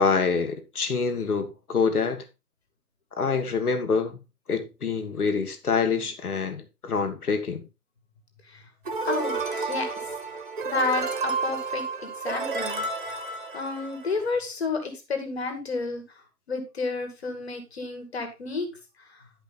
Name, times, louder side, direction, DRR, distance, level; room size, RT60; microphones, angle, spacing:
voice 1, 0.0-2.2 3.2-4.2 4.5-7.6, left 5 dB, 65° left, 1.9 m, -26 dB
sound 1, 8.9-14.4, right 4 dB, 30° right, 1.1 m, -31 dB
voice 2, 9.0-10.0 10.6-12.8 13.5-16.0 16.5-18.7 19.0-19.2, left 3 dB, 40° left, 2.2 m, -31 dB
10.5 x 5.4 x 4.0 m
hypercardioid pair, 170°, 47 cm